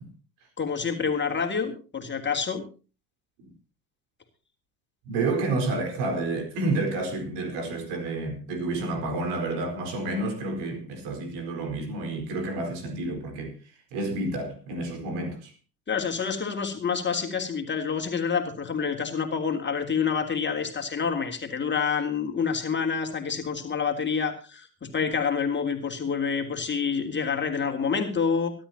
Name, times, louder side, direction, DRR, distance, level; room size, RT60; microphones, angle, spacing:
voice 1, 0.6-2.6 15.9-28.5, left 6 dB, 25° left, 3.3 m, -27 dB
voice 2, 5.0-13.5 13.9-15.5, right 2 dB, 55° right, 4.5 m, -30 dB
24.0 x 12.5 x 2.8 m
figure-of-eight pair, 65°, 47 cm